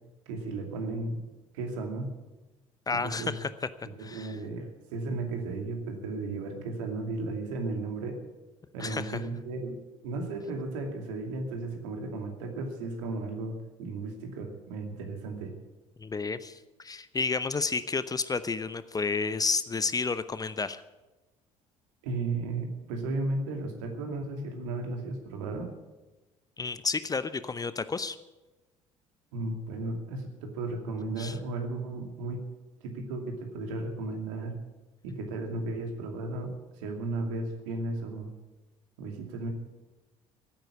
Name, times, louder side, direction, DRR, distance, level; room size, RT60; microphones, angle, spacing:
voice 1, 0.3-1.2 1.5-2.1 2.9-3.4 4.0-8.2 8.7-9.8 10.0-15.5 22.0-25.7 29.3-32.4 32.8-34.5 35.0-38.3 39.0-39.5, right 2 dB, 70° right, 3 dB, 2.5 m, -34 dB
voice 2, 2.9-3.5 4.0-4.4 8.8-9.2 16.0-20.8 26.6-28.2 31.2-31.3, left 4 dB, 20° left, 14 dB, 0.7 m, -31 dB
15.0 x 9.1 x 8.3 m, 1.1 s
figure-of-eight pair, 55°, 17 cm